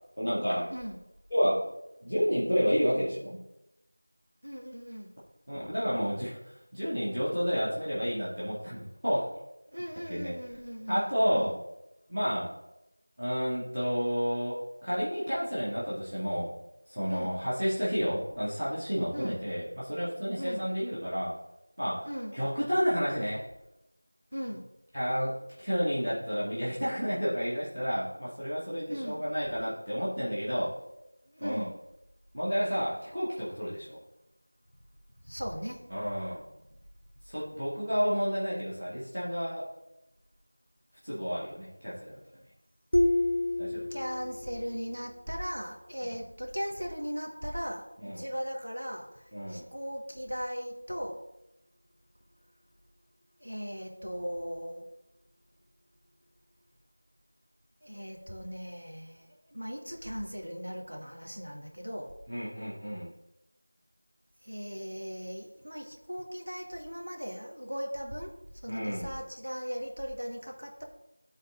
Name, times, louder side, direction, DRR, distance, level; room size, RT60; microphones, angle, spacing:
voice 1, 0.2-0.7 1.3-1.7 2.0-3.4 5.5-9.3 10.1-10.3 10.9-11.5 12.1-12.5 13.2-16.5 16.9-21.4 21.8-23.4 24.9-30.8 31.4-31.7 32.3-34.0 35.9-36.4 37.2-39.7 41.0-42.2 43.6-43.8 46.0-46.1 48.0-48.3 49.3-49.7 62.3-63.1 68.7-69.1, equal, 5° right, -9 dB, 1.3 m, -30 dB
voice 2, 4.4-5.1 9.7-11.5 17.1-17.4 19.1-19.4 20.4-20.6 22.1-22.3 24.3-24.6 28.9-29.2 31.3-31.7 35.2-35.8 42.3-42.4 43.9-51.2 53.4-54.8 57.8-59.3 59.5-62.1 64.4-68.3 68.6-70.8, equal, 70° right, -1 dB, 1.9 m, -38 dB
sound 1, 42.9-44.6, left 1 dB, 45° left, 0.7 m, -28 dB
11.5 x 4.0 x 3.8 m, 0.88 s
figure-of-eight pair, 175°, 0 cm